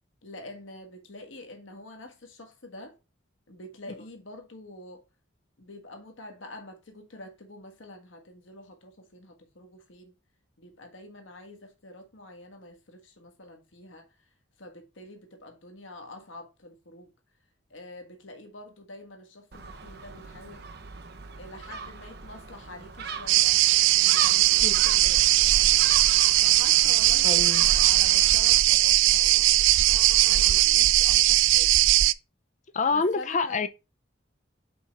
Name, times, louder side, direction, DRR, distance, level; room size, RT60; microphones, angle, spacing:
voice 1, 0.2-3.0 3.5-5.0 5.6-10.1 10.6-14.1 14.6-17.1 17.7-20.6 21.4-23.6 24.0-25.8 26.4-29.5 30.2-31.8 32.9-33.6, left 2 dB, 85° left, 1.6 m, -46 dB
Gull seagull, 19.5-28.6, right 5 dB, 55° right, 0.8 m, -40 dB
sound 1, 23.3-32.1, right 15 dB, 80° right, 0.3 m, -20 dB
voice 2, 27.2-27.7 32.7-33.7, left 4 dB, 40° left, 0.6 m, -27 dB
5.5 x 4.3 x 5.2 m
head